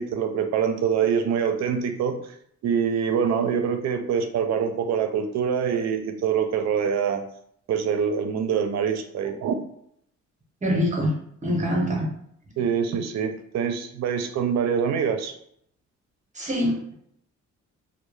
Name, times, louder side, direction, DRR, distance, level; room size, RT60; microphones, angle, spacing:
voice 1, 0.0-2.2 2.6-7.2 7.7-9.5 12.6-15.3, right 7 dB, 65° right, 7 dB, 0.4 m, -25 dB
voice 2, 10.6-11.1 11.4-12.1 16.4-16.7, equal, 25° right, 0 dB, 0.7 m, -24 dB
2.1 x 2.1 x 3.0 m, 0.69 s
cardioid pair, 90°, 30 cm